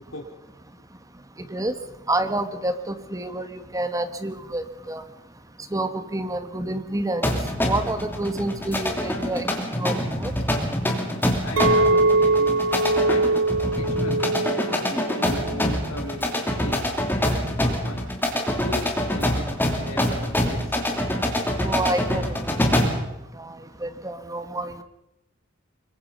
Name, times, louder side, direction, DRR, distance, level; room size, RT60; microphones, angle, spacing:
voice 1, 2.1-5.0 5.7-7.3 7.6-10.3 14.9-15.0 21.6-22.4 23.0-23.1 23.4-24.8, right 2 dB, 15° right, 10 dB, 1.4 m, -28 dB
sound 1, 7.2-23.1, left 1 dB, 10° left, 3.1 m, -25 dB
voice 2, 11.4-12.7 13.0-13.4 13.8-14.3 14.7-16.3 16.6-16.9 17.2-18.1 18.6-19.4 19.7-20.9, left 1 dB, 80° left, 1 dB, 2.9 m, -37 dB
Chink clink, 11.6-15.9 16.2-16.7, right 2 dB, 75° right, 1.4 m, -22 dB
25.0 x 23.0 x 5.5 m, 0.88 s
head